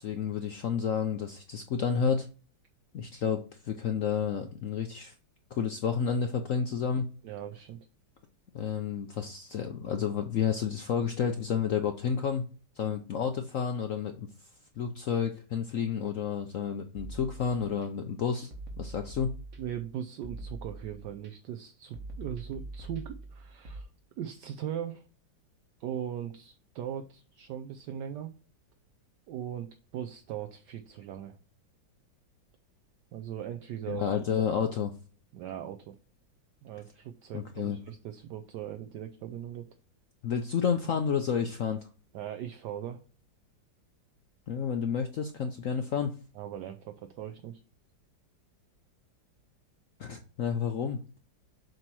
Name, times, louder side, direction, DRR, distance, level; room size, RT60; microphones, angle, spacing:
voice 1, 0.0-2.3 2.9-5.1 5.5-7.1 8.5-12.5 12.8-14.3 14.8-18.5 18.8-19.3 33.9-34.9 37.3-37.8 40.2-41.8 44.5-46.2 50.0-51.0, left 7 dB, 70° left, 6 dB, 0.8 m, -30 dB
voice 2, 7.2-7.8 19.6-23.9 24.2-25.0 25.8-28.3 29.3-29.7 29.9-31.4 33.1-34.1 35.3-35.9 36.6-39.7 42.1-43.0 46.4-47.6, right 10 dB, 70° right, 7 dB, 1.2 m, -39 dB
sound 1, 17.0-17.9 18.5-19.9 20.2-21.3 21.9-23.8, right 2 dB, 50° right, 1.6 m, -43 dB
7.7 x 3.0 x 6.1 m, 0.37 s
omnidirectional pair, 2.1 m